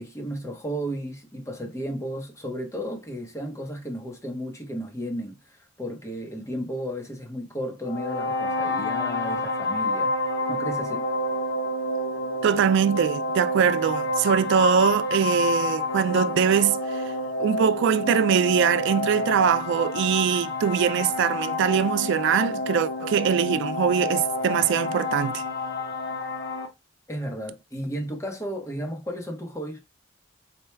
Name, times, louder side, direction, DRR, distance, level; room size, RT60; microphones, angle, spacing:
voice 1, 0.0-10.1 10.5-11.1 27.1-29.8, equal, 15° left, 0.9 m, -33 dB
sound 1, 7.8-26.7, left 2 dB, 60° left, 0.8 m, -29 dB
voice 2, 12.4-17.1 17.4-25.4, right 7 dB, 60° right, 0.3 m, -22 dB
4.4 x 2.2 x 3.2 m
head